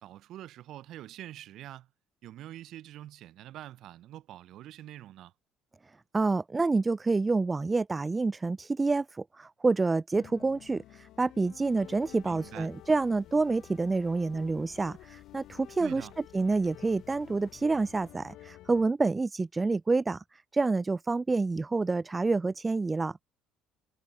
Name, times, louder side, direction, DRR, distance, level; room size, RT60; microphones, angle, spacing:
voice 1, 0.0-1.9 2.2-5.3 12.2-12.7 15.8-16.1, right 13 dB, 60° right, 0.7 m, -45 dB
voice 2, 6.1-16.1 16.3-20.2 20.5-23.2, right 3 dB, 20° right, 0.3 m, -28 dB
sound 1, 10.1-18.9, left 15 dB, 60° left, 1.1 m, -51 dB
sound 2, 11.7-18.1, left 8 dB, 45° left, 3.8 m, -64 dB
hypercardioid pair, 60°, 0 cm